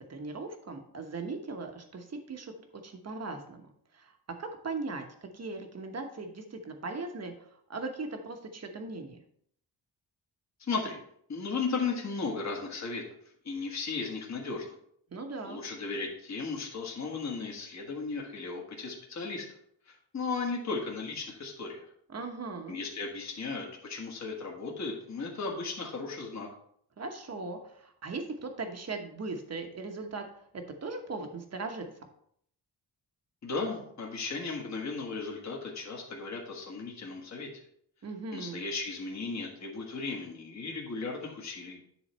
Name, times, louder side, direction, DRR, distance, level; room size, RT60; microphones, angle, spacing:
voice 1, 0.1-4.1 4.4-9.2 15.1-15.6 22.1-22.8 27.0-30.3 30.5-31.9 38.0-38.6, right 3 dB, 35° right, 5 dB, 1.0 m, -39 dB
voice 2, 10.6-11.0 11.3-13.0 13.4-14.7 15.4-19.5 19.9-21.8 22.7-26.5 33.4-37.5 38.3-41.8, left 4 dB, 40° left, -1 dB, 1.4 m, -35 dB
10.0 x 4.0 x 4.3 m, 0.67 s
wide cardioid pair, 165°, 42 cm